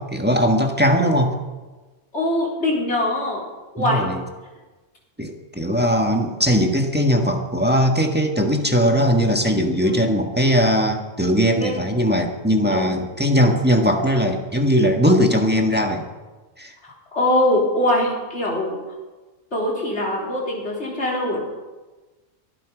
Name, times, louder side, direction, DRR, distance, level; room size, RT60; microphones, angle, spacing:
voice 1, 0.0-1.4 3.8-4.2 5.2-16.1 16.6-16.7, equal, 10° right, 3 dB, 1.6 m, -19 dB
voice 2, 2.1-3.4 3.7-4.1 9.8-10.1 11.6-11.8 12.7-13.0 16.8-19.0 19.5-21.4, left 1 dB, 60° left, -3 dB, 4.2 m, -23 dB
22.5 x 12.0 x 5.1 m, 1.2 s
omnidirectional pair, 1.3 m